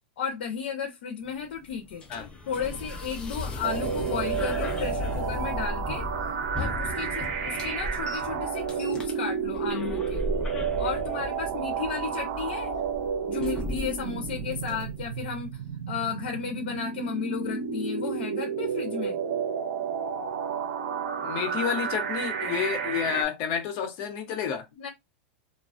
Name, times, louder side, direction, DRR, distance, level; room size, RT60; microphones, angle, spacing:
voice 1, 0.2-2.1 2.5-6.1 6.6-10.2 10.8-12.7 13.3-15.6 15.9-19.2 24.8-24.9, left 7 dB, 75° left, 0.6 m, -33 dB
sound 1, 1.2-15.2, left 1 dB, 15° left, 0.6 m, -36 dB
sound 2, 3.6-23.2, right 7 dB, 80° right, 0.6 m, -31 dB
voice 2, 21.2-24.6, left 8 dB, 45° left, 0.9 m, -30 dB
2.4 x 2.2 x 2.4 m
supercardioid pair, 140°, 6 cm